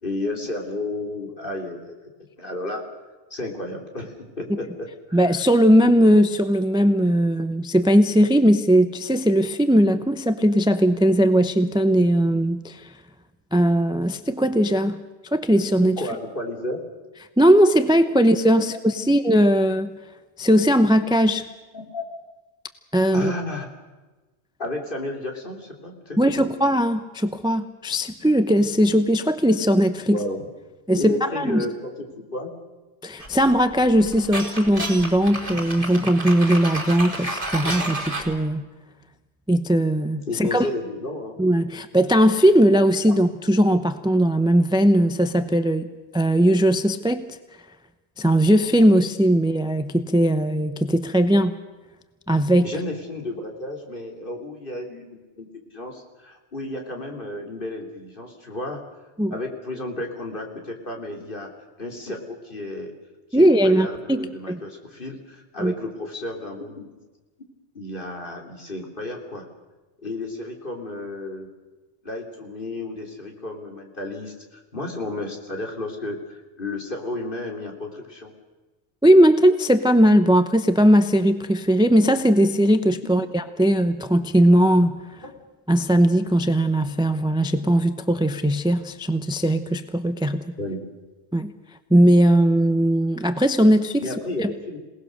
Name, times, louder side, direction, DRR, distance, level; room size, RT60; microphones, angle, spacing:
voice 1, 0.0-2.0 2.4-2.8 3.3-5.3 16.0-16.8 18.6-18.7 19.0-19.1 21.7-22.0 23.1-23.7 24.6-26.5 30.1-30.5 30.9-31.9 32.3-32.5 40.3-41.4 52.6-55.1 55.4-58.8 59.3-61.5 61.8-62.9 63.3-66.9 67.8-69.5 70.0-71.5 72.0-78.3 83.2-83.3 85.2-85.3 90.6-90.8 94.0-94.8, left 2 dB, 50° left, 1 dB, 3.4 m, -32 dB
voice 2, 5.1-12.9 13.5-15.0 15.3-16.0 17.4-19.9 20.4-21.4 22.9-23.3 26.2-30.2 30.9-31.6 33.0-38.6 39.5-40.7 41.4-47.4 48.2-51.6 52.3-52.7 59.2-59.3 63.3-64.6 65.6-65.7 79.0-85.2 85.7-90.5 91.3-91.5 91.9-94.0 94.4-94.5, equal, 5° right, 10 dB, 0.7 m, -19 dB
sound 1, 33.2-38.3, right 1 dB, 30° right, 3.4 m, -30 dB
27.0 x 19.0 x 6.5 m, 1.2 s
omnidirectional pair, 1.2 m